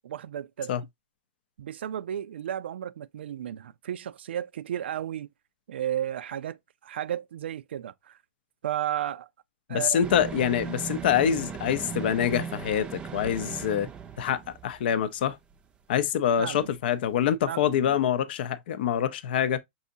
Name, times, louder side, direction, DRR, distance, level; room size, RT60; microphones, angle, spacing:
voice 1, 0.0-0.7 1.6-5.3 5.7-8.2 8.6-9.3 9.7-10.0 16.4-16.7 17.4-18.0, right 10 dB, 85° right, 0.4 m, -33 dB
voice 2, 9.7-13.9 14.2-15.4 15.9-19.6, left 9 dB, 65° left, 0.5 m, -25 dB
sound 1, 10.0-15.0 15.3-15.4, right 6 dB, 15° right, 0.5 m, -38 dB
5.5 x 2.7 x 2.6 m
hypercardioid pair, 140°, 6 cm